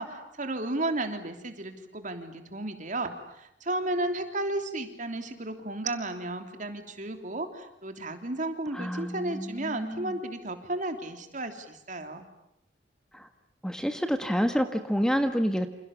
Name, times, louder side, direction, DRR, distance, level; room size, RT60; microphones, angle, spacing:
voice 1, 0.0-12.3, right 2 dB, 45° right, 7 dB, 3.2 m, -33 dB
voice 2, 8.7-10.2 13.1-13.3 13.6-15.7, equal, 5° left, 7 dB, 1.5 m, -28 dB
29.0 x 28.0 x 7.2 m, 0.80 s
head